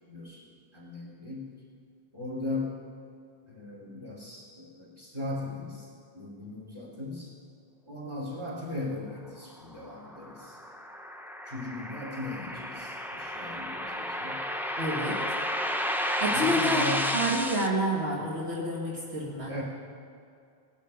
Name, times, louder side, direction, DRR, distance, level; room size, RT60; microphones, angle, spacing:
voice 1, 0.1-1.5 2.1-2.7 3.5-7.3 7.9-10.6 11.5-14.4 16.3-17.0 19.5-19.6, left 2 dB, 25° right, -4 dB, 3.7 m, -38 dB
sound 1, 9.8-17.7, equal, ahead, 0.6 m, -32 dB
voice 2, 14.8-15.2 16.2-16.9 17.1-19.6, equal, 70° right, -4 dB, 2.3 m, -29 dB
19.0 x 12.0 x 5.2 m, 2.4 s
omnidirectional pair, 1.1 m